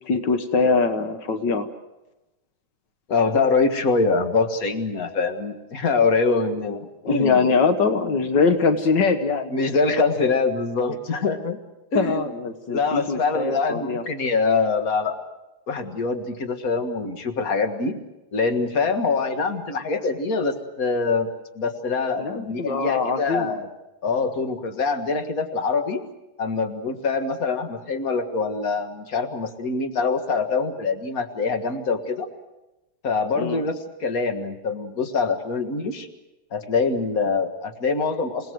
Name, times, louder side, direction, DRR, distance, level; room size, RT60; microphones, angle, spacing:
voice 1, 0.1-1.7 7.0-9.6 11.9-14.0 22.2-23.6 33.4-33.6, left 4 dB, 85° left, 8 dB, 0.9 m, -22 dB
voice 2, 3.1-7.4 9.5-11.6 11.9-12.2 12.7-15.2 15.7-18.0 18.3-21.3 21.5-23.7 24.0-26.0 26.4-32.3 33.0-36.1 36.5-38.5, left 4 dB, 40° left, 7 dB, 1.3 m, -24 dB
28.5 x 18.5 x 7.8 m, 1.0 s
omnidirectional pair, 3.8 m